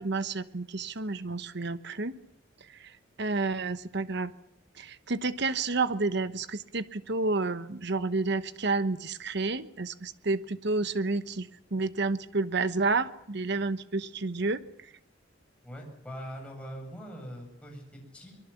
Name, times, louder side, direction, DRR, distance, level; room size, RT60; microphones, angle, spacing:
voice 1, 0.0-2.1 2.8-2.9 3.2-4.3 4.8-14.6, right 3 dB, 60° right, 12 dB, 1.1 m, -30 dB
voice 2, 15.6-18.3, equal, 5° left, 0 dB, 7.8 m, -42 dB
24.0 x 22.0 x 7.2 m, 0.75 s
head